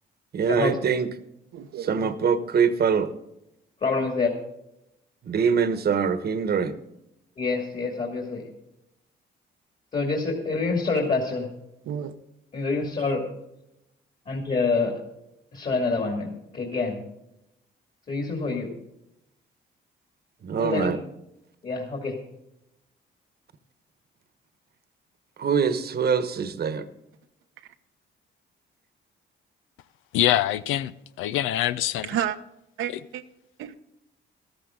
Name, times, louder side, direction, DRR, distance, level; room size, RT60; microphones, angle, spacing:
voice 1, 0.3-1.1 1.8-3.1 5.2-6.7 20.4-21.0 25.4-26.9, right 6 dB, 50° right, 1.2 m, -23 dB
voice 2, 1.5-2.2 11.9-12.2 27.6-27.7 32.0-32.4 32.8-33.2 33.6-33.8, right 10 dB, 85° right, 0.9 m, -31 dB
voice 3, 3.8-4.3 7.4-8.5 9.9-11.5 12.5-13.3 14.3-14.9 15.5-17.0 18.1-18.7 20.5-20.9 21.6-22.2, left 3 dB, 40° left, 2.6 m, -26 dB
voice 4, 30.1-30.9 31.2-32.1, left 13 dB, 90° left, 0.5 m, -24 dB
13.5 x 13.5 x 3.8 m
cardioid pair, 90°, 20 cm